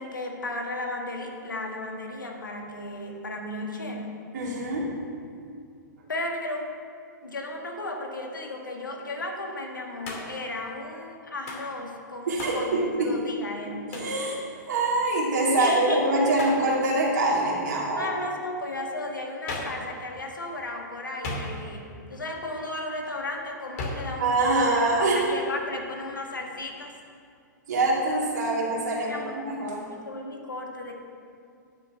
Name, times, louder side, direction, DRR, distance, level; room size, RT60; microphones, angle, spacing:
voice 1, 0.0-4.2 6.1-6.7 7.2-13.9 15.6-16.0 17.9-24.4 24.7-24.9 25.1-27.0 29.1-29.4 29.9-30.9, left 2 dB, 80° left, 2 dB, 1.6 m, -34 dB
voice 2, 4.3-4.9 12.3-13.1 13.9-14.4 14.7-18.1 24.2-25.2 27.7-29.8, right 2 dB, 65° right, -5 dB, 2.8 m, -24 dB
Hands, 10.0-10.5 11.5-11.7 12.4-12.7 13.9-14.2 16.4-16.7 19.5-19.8 21.2-21.8 23.8-24.1, left 2 dB, 50° left, 2.8 m, -35 dB
12.0 x 6.5 x 7.6 m, 2.3 s
figure-of-eight pair, 105°, 10 cm